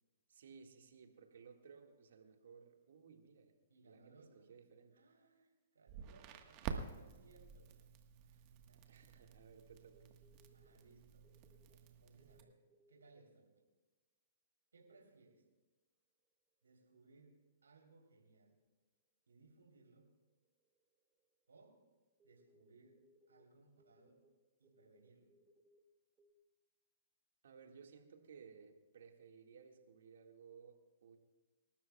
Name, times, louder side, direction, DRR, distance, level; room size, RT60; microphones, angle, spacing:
voice 1, 0.3-3.5 3.8-4.2 4.5-5.0 8.9-10.1 27.4-31.2, right 6 dB, 70° right, 4 dB, 1.9 m, -59 dB
voice 2, 3.7-4.5 4.9-7.9 8.2-9.3 10.5-11.3 11.6-12.6 12.9-13.5 14.7-15.4 16.6-18.6 19.3-20.1 21.5-21.8 22.2-23.0 23.3-24.2 24.6-25.3, right 3 dB, 90° right, 0 dB, 3.3 m, -66 dB
Crackle, 5.9-12.4, right 6 dB, 40° right, 1.4 m, -50 dB
sound 1, 9.9-10.9 11.2-11.8 12.2-13.1 14.9-15.0 17.3-17.4 20.3-20.4 20.6-21.2 21.5-21.7 22.2-23.5 23.7-25.8 26.2-26.3, equal, 15° right, 1.2 m, -71 dB
27.5 x 12.5 x 2.3 m, 1.2 s
hypercardioid pair, 125°, 0 cm